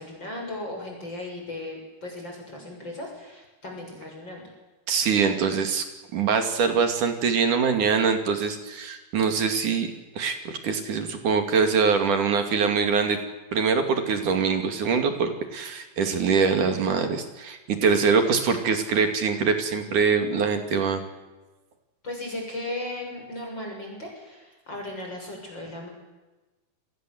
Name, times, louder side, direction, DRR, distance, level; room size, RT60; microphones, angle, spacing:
voice 1, 0.0-4.4 22.0-25.9, left 1 dB, 30° left, 0 dB, 7.4 m, -36 dB
voice 2, 4.9-5.9 6.1-9.9 10.2-13.2 13.5-21.0, right 5 dB, 60° right, 6 dB, 3.9 m, -23 dB
29.0 x 21.5 x 7.9 m, 1.1 s
omnidirectional pair, 4.1 m